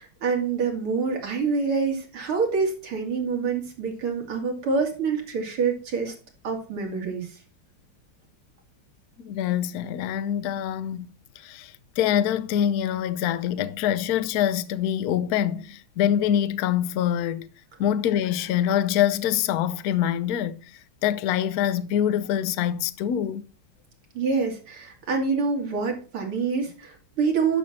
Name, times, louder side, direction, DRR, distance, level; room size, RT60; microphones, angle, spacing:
voice 1, 0.0-6.1 6.4-7.4 24.1-27.6, right 5 dB, 90° right, 3.3 m, -26 dB
voice 2, 9.2-17.5 17.8-20.6 21.0-23.4, left 10 dB, 65° left, 0.9 m, -25 dB
11.0 x 6.4 x 4.3 m
omnidirectional pair, 2.3 m